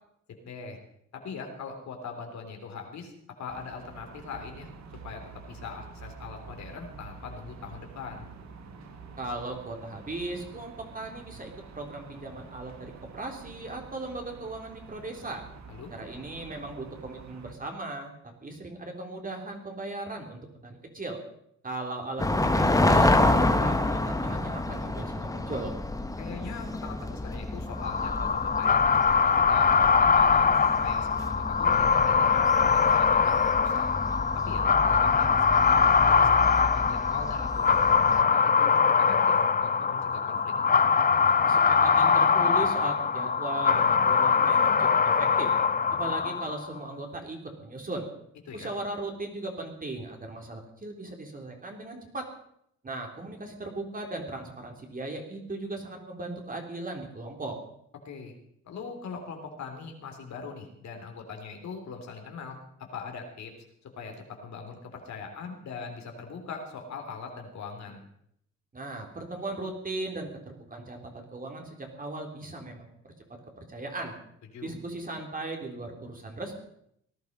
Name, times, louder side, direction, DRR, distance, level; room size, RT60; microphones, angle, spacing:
voice 1, 0.4-0.8 1.1-3.1 3.4-4.7 5.0-5.2 5.5-8.3 15.7-15.9 26.2-33.9 34.3-37.8 38.1-40.5 48.5-48.7 58.1-58.4 58.6-62.6 62.9-63.5 64.0-68.0 74.5-74.7, left 5 dB, 65° left, 3 dB, 3.6 m, -41 dB
sound 1, 3.5-17.5, right 4 dB, 65° right, 2.3 m, -47 dB
voice 2, 9.2-15.4 15.9-18.1 18.4-21.2 21.6-25.7 41.5-45.5 45.9-48.1 48.5-52.3 52.8-57.6 68.7-72.9 73.3-74.1 74.6-76.5, right 2 dB, 30° right, 2 dB, 3.7 m, -37 dB
sound 2, 22.2-38.2, left 2 dB, 10° left, 1.4 m, -29 dB
sound 3, 27.8-46.7, left 6 dB, 30° left, 0.7 m, -22 dB
18.5 x 11.5 x 5.4 m, 0.72 s
cardioid pair, 90°, 30 cm